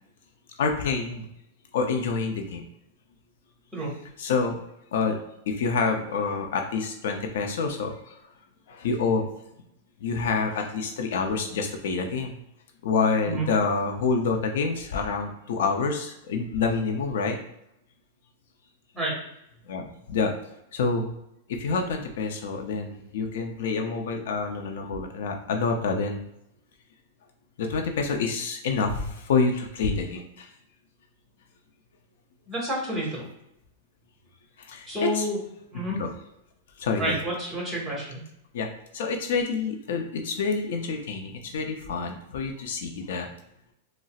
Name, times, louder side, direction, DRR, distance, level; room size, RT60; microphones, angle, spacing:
voice 1, 0.6-1.3 1.7-2.6 4.2-4.6 4.9-5.2 5.5-8.2 8.7-9.3 10.0-12.4 12.8-17.4 19.7-20.3 20.7-21.1 21.5-26.2 27.6-30.5 34.6-35.3 35.9-36.1 36.8-37.2 38.5-38.7 38.9-43.3, left 4 dB, 70° left, 3 dB, 0.5 m, -27 dB
voice 2, 32.5-33.2 34.9-35.4 35.7-36.0 37.0-38.2, right 1 dB, 15° right, -4 dB, 1.5 m, -29 dB
4.0 x 2.0 x 2.4 m, 0.81 s
supercardioid pair, 140°, 0 cm